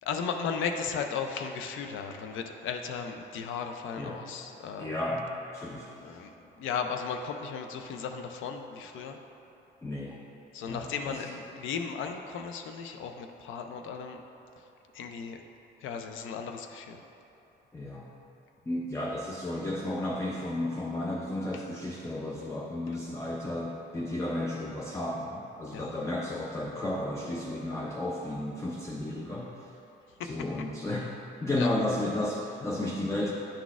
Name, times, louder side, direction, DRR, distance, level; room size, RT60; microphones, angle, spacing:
voice 1, 0.0-5.0 6.0-9.2 10.5-14.2 14.9-15.4 15.8-17.0 21.5-21.6 25.7-25.9 30.2-30.3 31.6-31.7, left 6 dB, 80° left, 5 dB, 0.4 m, -36 dB
voice 2, 4.8-5.9 9.8-10.2 10.7-11.3 17.7-18.1 18.7-29.7 30.2-31.1 31.4-33.3, left 1 dB, 15° left, -2 dB, 0.5 m, -33 dB
10.0 x 4.0 x 2.4 m, 2.9 s
cardioid pair, 90°, 20 cm